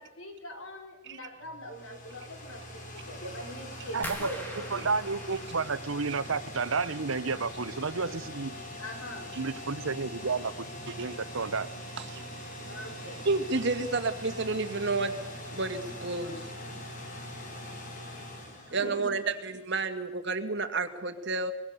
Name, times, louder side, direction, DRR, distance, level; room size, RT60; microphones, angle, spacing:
voice 1, 0.0-4.9 8.8-9.6 12.7-13.3 18.7-19.2, equal, 85° left, 4.7 m, -42 dB
sound 1, 1.4-19.5, left 1 dB, 40° left, 4.4 m, -42 dB
voice 2, 3.9-4.3 4.7-8.6 9.4-10.7 11.0-11.7, right 4 dB, 85° right, 1.0 m, -31 dB
sound 2, 4.0-6.9 7.2-7.9 8.2-8.7 9.1-9.2, equal, 10° left, 3.6 m, -44 dB
voice 3, 13.2-15.2 15.5-16.5 18.7-21.5, right 3 dB, 60° right, 2.1 m, -30 dB
24.5 x 22.0 x 6.9 m
head